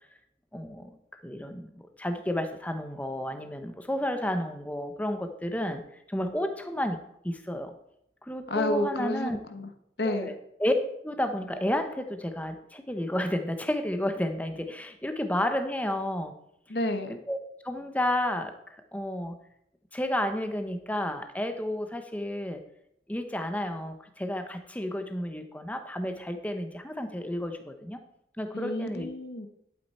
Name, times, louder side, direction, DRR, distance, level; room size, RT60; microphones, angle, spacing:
voice 1, 0.5-0.9 1.2-5.8 6.1-7.7 8.2-9.4 10.0-10.3 10.6-10.7 11.0-16.3 17.3-17.4 17.6-19.4 19.9-22.6 23.1-28.0 28.4-29.1, left 1 dB, 10° left, 7 dB, 0.8 m, -31 dB
voice 2, 8.5-9.7 10.0-10.3 16.7-17.2 28.5-29.5, left 1 dB, 65° left, 7 dB, 1.2 m, -30 dB
11.5 x 8.6 x 4.3 m, 0.75 s
head